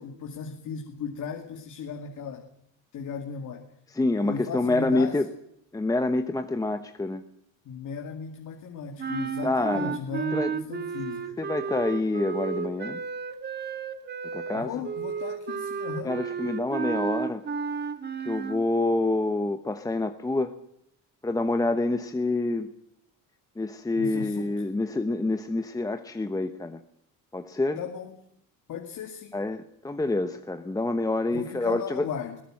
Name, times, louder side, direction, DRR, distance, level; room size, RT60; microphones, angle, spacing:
voice 1, 0.0-2.4 2.9-3.6 4.0-5.1 7.7-11.4 14.5-16.2 24.0-24.5 27.8-28.1 28.7-29.3 31.3-32.4, left 6 dB, 60° left, 4 dB, 2.3 m, -36 dB
voice 2, 3.9-5.3 5.7-7.2 9.4-10.0 10.3-10.5 11.4-13.0 14.3-14.7 16.0-17.4 18.2-20.5 21.2-22.7 23.6-26.8 27.3-27.8 29.3-32.1, left 2 dB, 10° left, 8 dB, 1.0 m, -27 dB
sound 1, 9.0-18.6, right 6 dB, 30° right, 1.9 m, -32 dB
21.0 x 17.5 x 7.7 m, 0.74 s
cardioid pair, 150°, 34 cm